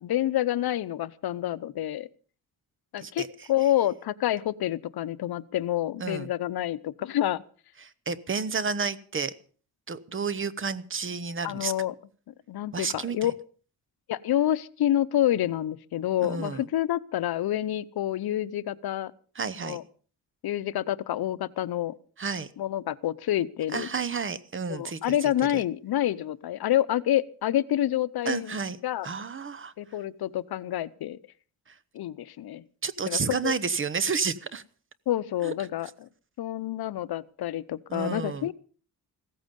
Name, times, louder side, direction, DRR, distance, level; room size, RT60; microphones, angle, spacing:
voice 1, 0.0-2.1 2.9-7.4 11.4-11.9 12.3-13.3 14.1-19.1 19.6-19.8 20.4-21.9 22.6-23.9 24.7-28.5 28.8-29.1 29.8-31.2 31.9-32.6 33.1-33.5 35.1-36.1 36.4-38.5, left 12 dB, 80° left, 17 dB, 0.8 m, -28 dB
voice 2, 3.0-3.5 6.0-6.3 7.8-9.3 9.9-11.7 12.7-13.3 16.2-16.7 19.3-19.8 22.2-22.5 23.7-25.6 28.2-28.8 29.0-29.7 31.7-31.8 32.8-34.6 35.4-35.5 37.9-38.5, right 5 dB, 35° right, 16 dB, 0.9 m, -31 dB
16.0 x 14.5 x 5.3 m, 0.41 s
wide cardioid pair, 135°, 37 cm